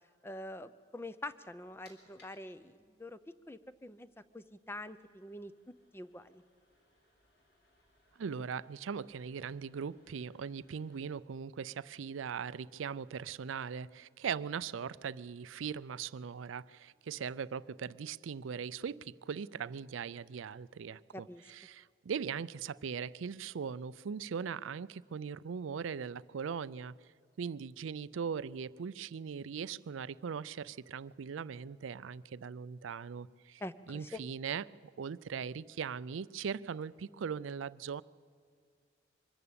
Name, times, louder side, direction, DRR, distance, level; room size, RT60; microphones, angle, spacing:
voice 1, 0.2-3.2 3.5-4.1 4.3-5.5 5.9-6.4 21.1-21.4 33.6-34.2, left 1 dB, 10° left, 13 dB, 0.5 m, -45 dB
sound 1, 1.5-11.2, left 2 dB, 55° left, 3.8 m, -70 dB
voice 2, 8.2-27.0 27.4-33.6 33.9-34.6 35.0-38.0, right 6 dB, 85° right, 19 dB, 0.4 m, -40 dB
23.5 x 13.5 x 8.6 m, 2.1 s
head